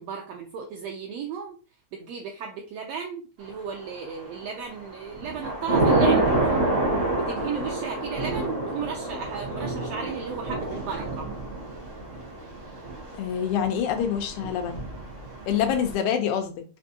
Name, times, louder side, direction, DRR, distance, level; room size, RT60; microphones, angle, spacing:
voice 1, 0.0-1.6 1.9-6.6 7.1-11.3, right 6 dB, 80° right, 2 dB, 1.5 m, -35 dB
Thunder / Rain, 3.8-4.4 4.8-15.9, right 2 dB, 65° right, 0.7 m, -28 dB
voice 2, 13.2-14.8 15.5-16.6, left 8 dB, 90° left, 5 dB, 2.1 m, -26 dB
5.1 x 2.6 x 2.7 m, 0.36 s
omnidirectional pair, 3.4 m